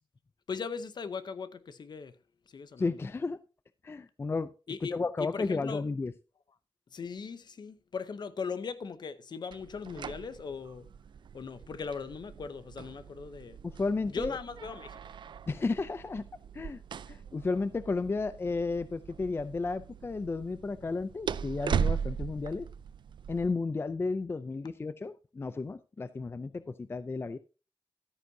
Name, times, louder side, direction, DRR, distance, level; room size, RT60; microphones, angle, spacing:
voice 1, 0.5-2.1 2.5-2.9 4.7-5.8 6.9-10.9 11.3-13.6 14.1-15.0, left 5 dB, 55° left, 0.7 m, -39 dB
voice 2, 2.8-3.4 3.8-4.5 4.9-6.1 13.6-14.4 15.5-16.2 16.5-16.8 17.1-22.7 23.3-27.4, left 3 dB, 25° left, 0.4 m, -33 dB
sound 1, 9.5-23.5, right 7 dB, 60° right, 0.4 m, -39 dB
13.0 x 9.2 x 2.7 m
wide cardioid pair, 145°, 9 cm